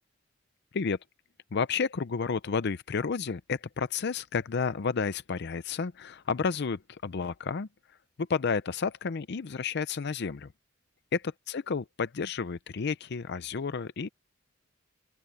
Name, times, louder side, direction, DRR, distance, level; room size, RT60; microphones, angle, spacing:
voice 1, 1.5-7.7 8.2-10.5 11.1-14.1, left 5 dB, 55° left, 0.5 m, -31 dB
open air
head